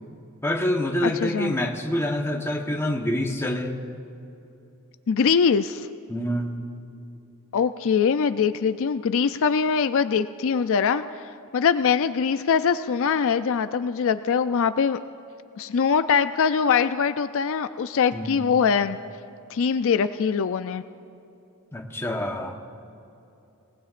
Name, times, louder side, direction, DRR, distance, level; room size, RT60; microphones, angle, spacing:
voice 1, 0.4-3.8 6.1-6.6 18.1-18.5 21.7-22.6, left 1 dB, 10° left, 2 dB, 1.1 m, -26 dB
voice 2, 1.0-1.6 5.1-5.9 7.5-15.0 15.6-19.0 19.5-20.8, left 6 dB, 65° left, 11 dB, 0.4 m, -23 dB
26.5 x 19.0 x 2.5 m, 2.8 s
head